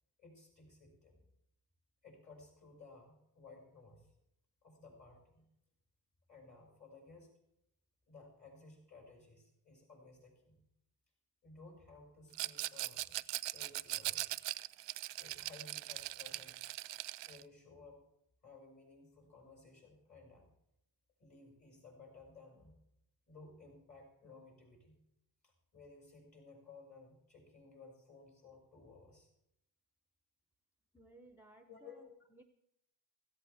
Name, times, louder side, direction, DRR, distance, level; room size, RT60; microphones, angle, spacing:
voice 1, 0.2-1.2 2.0-4.1 4.6-5.5 6.3-7.3 8.1-10.6 11.4-13.1 13.5-14.3 15.2-16.7 17.3-18.1 18.4-20.5 21.2-22.7 23.3-25.0 25.4-29.3 31.7-32.0, left 3 dB, 40° left, -1 dB, 6.2 m, -57 dB
Rattle, 12.3-17.4, right 17 dB, 70° right, 0.5 m, -40 dB
voice 2, 30.9-32.4, right 2 dB, 5° right, 7 dB, 0.7 m, -60 dB
16.5 x 14.5 x 3.5 m, 0.80 s
cardioid pair, 115°, 46 cm